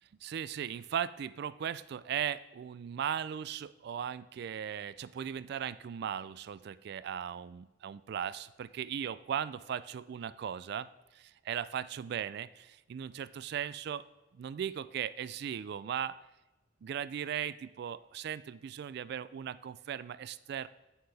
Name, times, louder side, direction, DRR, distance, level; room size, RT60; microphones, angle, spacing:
voice 1, 0.2-10.9 11.1-14.0 14.3-16.2 16.8-20.7, right 8 dB, 60° right, 16 dB, 0.3 m, -38 dB
8.7 x 7.7 x 3.4 m, 1.0 s
head